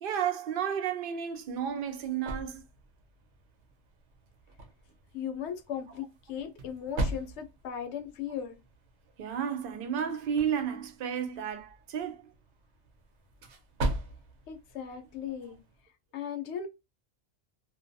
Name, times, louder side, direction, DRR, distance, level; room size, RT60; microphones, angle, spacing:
voice 1, 0.0-2.6 9.2-12.2, right 8 dB, 60° right, 0.6 m, -32 dB
sound 1, 1.3-15.8, right 1 dB, 80° right, 0.9 m, -41 dB
voice 2, 5.1-8.6 14.5-15.6 16.1-16.7, left 8 dB, 80° left, 0.9 m, -37 dB
2.6 x 2.2 x 2.5 m
omnidirectional pair, 1.2 m